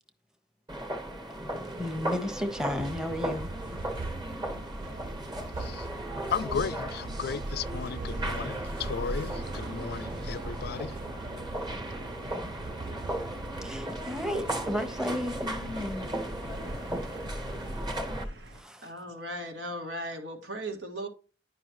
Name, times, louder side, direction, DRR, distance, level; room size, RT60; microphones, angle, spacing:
sound 1, 0.7-18.2, right 1 dB, 25° right, 1.4 m, -37 dB
voice 1, 1.5-3.5 13.6-16.1 18.5-18.9, left 1 dB, 5° right, 1.0 m, -34 dB
sound 2, 1.5-18.6, equal, 65° right, 1.2 m, -45 dB
sound 3, 2.4-18.1, right 2 dB, 50° right, 0.5 m, -40 dB
voice 2, 6.3-11.0, left 6 dB, 60° left, 0.4 m, -35 dB
voice 3, 18.8-21.1, right 1 dB, 80° right, 1.9 m, -37 dB
11.0 x 5.4 x 3.0 m
head